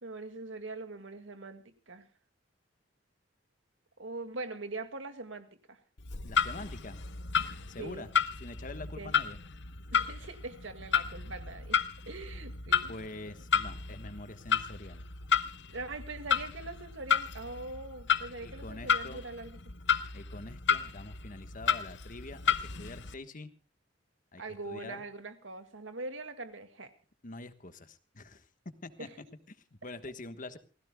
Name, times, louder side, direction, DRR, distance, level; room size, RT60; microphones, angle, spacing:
voice 1, 0.0-2.1 4.0-5.8 7.8-8.1 9.0-9.1 9.9-11.8 12.1-12.9 15.7-19.6 24.4-26.9 29.0-29.1, right 2 dB, 85° right, 9 dB, 2.0 m, -42 dB
Clock, 6.0-23.1, left 7 dB, 65° left, 1.0 m, -32 dB
voice 2, 6.2-7.0 7.7-8.1 8.4-9.4 12.9-15.0 18.4-19.2 20.1-23.5 24.3-25.0 27.2-28.5 28.8-29.1 29.5-30.6, left 2 dB, 45° left, 10 dB, 1.3 m, -45 dB
28.0 x 16.5 x 2.3 m, 0.35 s
head